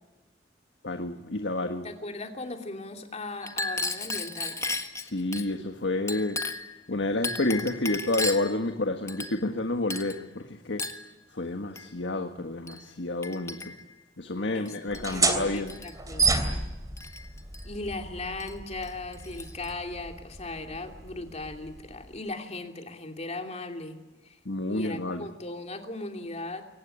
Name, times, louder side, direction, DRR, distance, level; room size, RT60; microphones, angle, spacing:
voice 1, 0.8-1.9 5.0-6.4 6.9-10.8 11.3-13.8 14.2-15.8 24.4-25.3, left 2 dB, 80° left, 6 dB, 1.6 m, -29 dB
voice 2, 1.8-4.6 6.9-7.0 14.5-14.7 15.1-16.4 17.6-24.0 24.2-24.4 24.7-26.6, left 2 dB, 35° left, 4 dB, 2.8 m, -38 dB
Chink clink, 3.4-5.5 6.1-6.8 7.2-8.6 9.1-9.6 9.9-10.2 10.8-11.1 11.8-11.9 12.7-12.8 13.2-13.9 14.7-15.3 15.6-15.9 17.0-17.6 18.4-18.5 18.8-19.7, left 3 dB, 15° left, 1.6 m, -35 dB
sound 1, 14.9-22.2, right 3 dB, 20° right, 3.0 m, -31 dB
23.5 x 18.5 x 10.0 m, 1.1 s
head